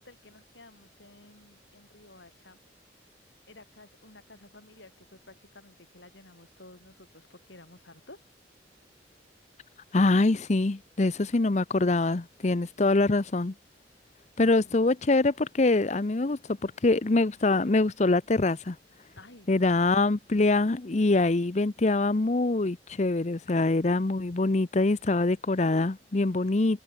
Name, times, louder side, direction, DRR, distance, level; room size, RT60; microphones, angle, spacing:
voice 1, 0.0-2.6 3.5-8.2 14.6-14.8 19.2-19.5, left 2 dB, 80° left, 5.5 m, -53 dB
voice 2, 9.9-13.5 14.4-18.8 19.5-26.8, left 2 dB, 40° left, 0.7 m, -24 dB
head